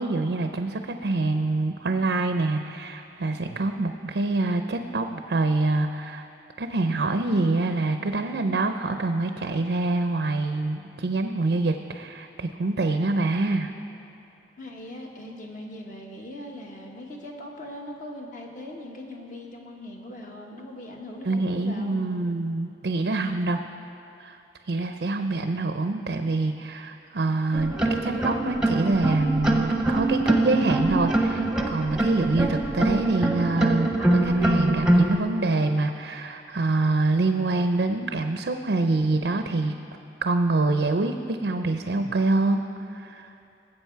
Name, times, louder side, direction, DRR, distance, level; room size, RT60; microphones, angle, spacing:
voice 1, 0.0-6.3 6.6-13.7 21.2-23.6 24.2-24.4 24.7-39.8 40.2-43.3, right 2 dB, 70° right, 7 dB, 0.5 m, -25 dB
voice 2, 14.6-22.0, left 1 dB, 45° left, 0 dB, 1.5 m, -40 dB
sound 1, 27.5-35.2, right 2 dB, 5° right, 0.8 m, -23 dB
20.0 x 7.8 x 4.6 m, 2.7 s
head